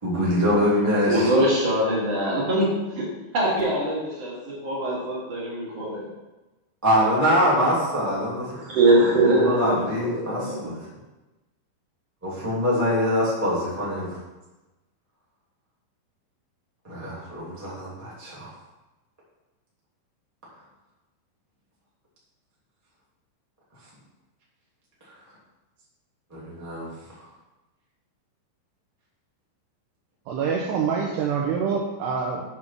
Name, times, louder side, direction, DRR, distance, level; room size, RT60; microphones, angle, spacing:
voice 1, 0.0-1.3 6.8-8.6 9.3-10.8 12.2-14.1 16.8-18.5 26.3-26.9, equal, 5° right, -7 dB, 1.6 m, -24 dB
voice 2, 0.9-3.1 3.3-6.1 8.5-10.7, right 1 dB, 40° right, -6 dB, 2.9 m, -23 dB
voice 3, 30.3-32.4, right 6 dB, 75° right, -1 dB, 2.6 m, -26 dB
7.7 x 5.9 x 6.0 m, 1.1 s
omnidirectional pair, 5.5 m